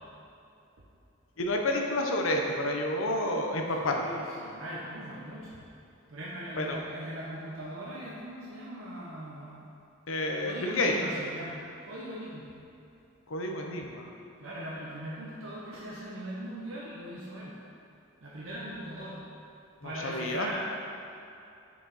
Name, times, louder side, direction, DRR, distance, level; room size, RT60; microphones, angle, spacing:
voice 1, 1.4-4.1 6.6-6.8 10.1-11.0 13.3-14.1 19.8-20.5, left 1 dB, 85° left, 2 dB, 0.7 m, -29 dB
voice 2, 3.8-5.6 6.1-9.7 10.4-12.5 14.4-17.6 18.2-19.2 19.8-20.5, right 1 dB, 85° right, -6 dB, 0.8 m, -40 dB
6.3 x 4.8 x 4.0 m, 2.7 s
head